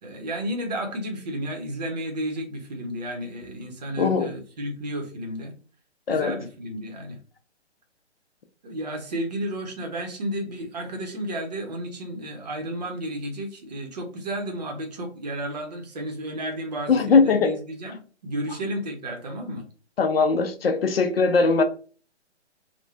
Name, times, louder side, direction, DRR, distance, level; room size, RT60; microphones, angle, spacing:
voice 1, 0.0-5.5 6.1-7.2 8.6-19.6, right 1 dB, 35° right, 0.7 m, -32 dB
voice 2, 4.0-4.3 6.1-6.3 16.9-17.5 20.0-21.6, left 4 dB, 55° left, 0.5 m, -20 dB
3.1 x 2.1 x 2.3 m
figure-of-eight pair, 140°, 35 cm